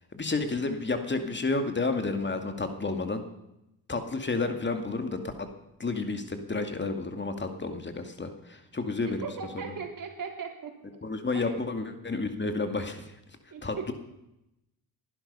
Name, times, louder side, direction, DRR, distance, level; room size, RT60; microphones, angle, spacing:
voice 1, 0.1-3.2 3.9-5.2 5.8-9.2 9.5-9.7 11.0-13.1 13.6-13.9, left 3 dB, 30° left, 6 dB, 2.3 m, -31 dB
voice 2, 9.0-10.7 11.3-11.6 13.5-13.9, right 6 dB, 55° right, 3 dB, 3.6 m, -38 dB
19.5 x 12.0 x 5.6 m, 0.88 s
supercardioid pair, 70°, 39 cm